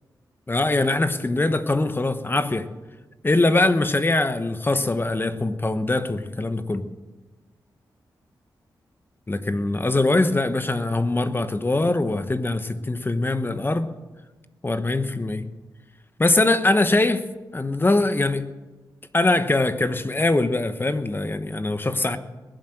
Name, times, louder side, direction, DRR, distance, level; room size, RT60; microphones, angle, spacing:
voice 1, 0.5-2.7 3.2-6.9 9.3-13.9 14.6-15.5 16.2-17.2 17.5-18.5 19.1-22.2, left 2 dB, 25° left, 11 dB, 1.1 m, -22 dB
21.0 x 7.9 x 7.7 m, 1.2 s
cardioid pair, 55°, 8 cm